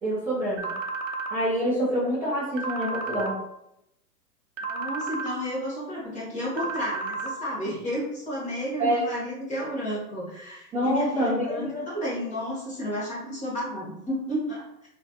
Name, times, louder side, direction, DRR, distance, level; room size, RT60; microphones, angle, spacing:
voice 1, 0.0-0.8 1.3-3.4 8.8-9.0 10.7-11.8, equal, 5° right, -11 dB, 0.5 m, -26 dB
sound 1, 0.6-1.3 2.6-3.3 4.6-5.3 6.6-7.3, right 4 dB, 50° right, 0.6 m, -32 dB
voice 2, 4.7-14.7, equal, 15° left, -6 dB, 1.1 m, -32 dB
3.1 x 2.5 x 2.8 m, 0.81 s
hypercardioid pair, 120°, 50 cm